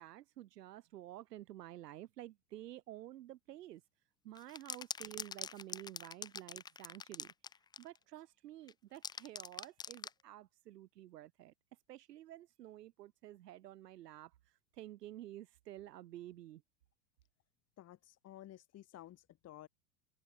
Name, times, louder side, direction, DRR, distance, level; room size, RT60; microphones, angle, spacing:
voice 1, 0.0-3.8 4.2-7.3 7.8-11.5 11.9-16.6, right 14 dB, 80° right, 5.1 m, -51 dB
sound 1, 4.3-8.0 8.7-10.2, left 6 dB, 10° left, 0.5 m, -44 dB
voice 2, 17.8-19.7, left 13 dB, 30° left, 4.9 m, -54 dB
supercardioid pair, 135°, 48 cm